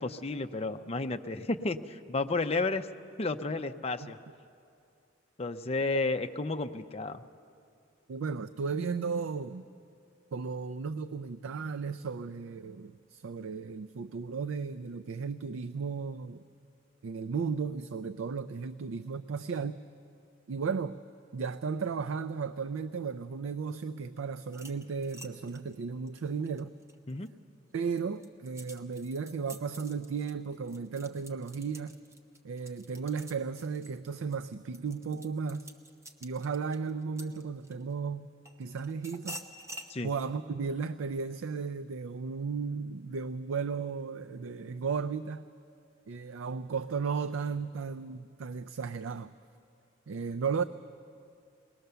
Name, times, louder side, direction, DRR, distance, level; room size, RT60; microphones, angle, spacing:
voice 1, 0.0-2.9 3.2-4.2 5.4-7.2 27.1-27.3 39.9-40.1, left 3 dB, 30° left, 8 dB, 0.5 m, -32 dB
voice 2, 8.1-9.7 10.3-16.4 17.0-19.8 20.5-20.9 21.3-26.7 27.7-32.0 32.4-35.7 36.2-38.3 38.6-39.4 40.0-45.4 46.1-49.3 50.1-50.6, right 5 dB, 75° right, 12 dB, 0.4 m, -35 dB
sound 1, 24.5-27.3 27.8-37.9 38.5-39.9, right 1 dB, 15° right, 0.9 m, -49 dB
21.5 x 19.0 x 6.8 m, 2.5 s
head